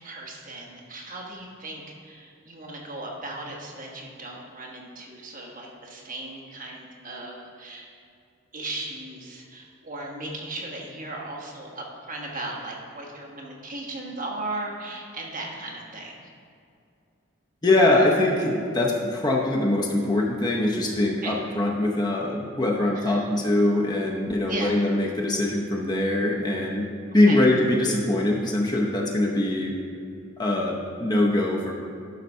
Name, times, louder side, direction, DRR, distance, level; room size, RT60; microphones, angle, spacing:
voice 1, 0.0-7.9 8.5-16.2 21.2-21.4 22.9-23.3 24.5-24.8 27.2-27.5, right 2 dB, 40° right, -2 dB, 1.3 m, -37 dB
voice 2, 17.6-26.9 27.1-29.8 30.4-31.7, left 1 dB, 20° left, -1 dB, 0.7 m, -23 dB
12.0 x 4.0 x 5.4 m, 2.4 s
head